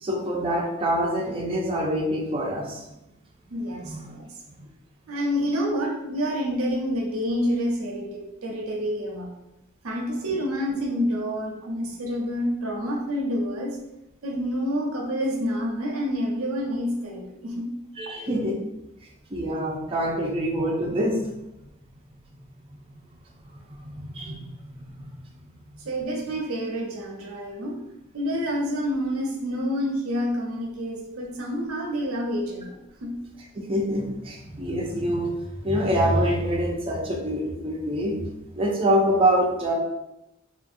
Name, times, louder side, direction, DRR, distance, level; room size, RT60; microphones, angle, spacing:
voice 1, 0.0-2.8 3.8-4.0 18.0-18.7 19.3-21.2 23.9-24.4 25.0-25.1 33.7-35.3 35.6-38.1 38.6-39.7, equal, 25° right, -2 dB, 0.4 m, -25 dB
voice 2, 3.5-4.3 5.1-9.3 9.8-13.8 14.2-17.7 25.8-27.8 28.1-33.1, equal, 90° right, 0 dB, 0.7 m, -28 dB
2.8 x 2.6 x 2.5 m, 0.89 s
head